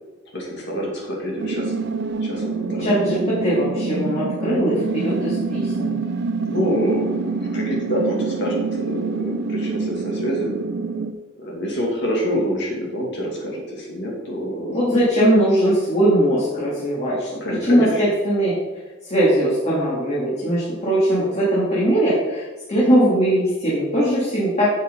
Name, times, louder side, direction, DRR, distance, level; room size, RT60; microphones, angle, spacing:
voice 1, 0.3-1.7 2.2-2.9 6.4-10.5 11.4-15.0 17.4-18.0, equal, 60° left, -3 dB, 2.6 m, -26 dB
sound 1, 1.4-11.1, right 4 dB, 60° right, 0.6 m, -26 dB
voice 2, 2.8-6.0 14.7-17.4 17.7-18.5 19.0-24.7, right 1 dB, 35° left, -8 dB, 2.8 m, -20 dB
11.0 x 7.8 x 4.0 m, 1.3 s
head